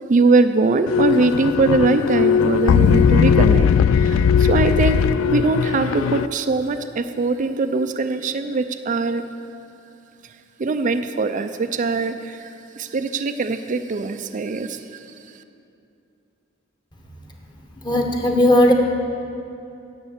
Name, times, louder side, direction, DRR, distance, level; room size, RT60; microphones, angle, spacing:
voice 1, 0.1-3.7 4.0-9.2 10.6-12.4 12.8-14.8, right 3 dB, 40° right, 9 dB, 0.4 m, -21 dB
sound 1, 0.9-6.3, left 7 dB, 90° left, 0.3 m, -18 dB
voice 2, 17.8-18.7, left 1 dB, 20° left, 1 dB, 1.2 m, -16 dB
10.5 x 8.3 x 7.2 m, 2.7 s
head